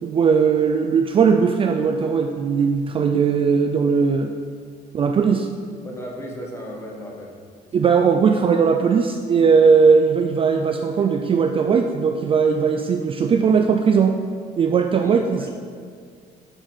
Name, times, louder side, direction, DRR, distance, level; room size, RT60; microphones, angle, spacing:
voice 1, 0.0-4.3 4.9-5.5 7.7-14.2 14.6-15.5, right 6 dB, 30° right, 4 dB, 0.4 m, -18 dB
voice 2, 5.8-7.4 7.7-7.8 15.0-15.5, equal, 15° left, -2 dB, 1.6 m, -35 dB
6.8 x 4.3 x 5.9 m, 2.1 s
cardioid pair, 110°, 17 cm